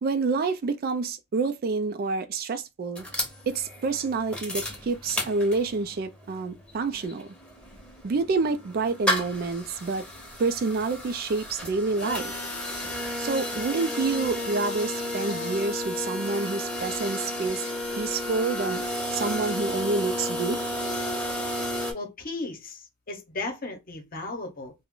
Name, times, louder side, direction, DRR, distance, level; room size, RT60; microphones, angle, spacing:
voice 1, 0.0-3.0 3.5-7.4 8.0-10.0 10.4-12.3 13.2-17.6 18.0-18.8 19.1-20.6, right 4 dB, 50° right, 0.4 m, -28 dB
sound 1, 3.0-5.9 6.3-6.4 6.6-21.9, left 1 dB, 5° left, 0.8 m, -32 dB
voice 2, 21.9-24.7, left 2 dB, 45° left, 0.8 m, -35 dB
2.4 x 2.1 x 3.6 m
head